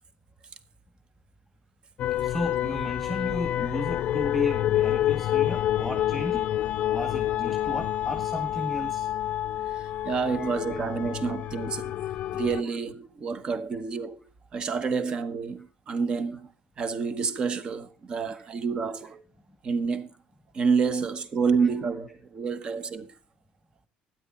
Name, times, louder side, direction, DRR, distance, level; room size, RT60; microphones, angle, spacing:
sound 1, 2.0-12.6, left 12 dB, 50° left, 0.5 m, -28 dB
voice 1, 2.2-6.5 6.9-9.1 10.2-10.8 12.7-12.8 18.3-18.4 21.6-21.7, left 1 dB, ahead, 1.6 m, -34 dB
voice 2, 10.0-12.0 12.3-14.2 14.5-16.5 16.8-19.2 19.6-20.1 20.5-23.1, right 5 dB, 30° right, 1.1 m, -28 dB
12.5 x 10.0 x 3.8 m
cardioid pair, 165°, 3 cm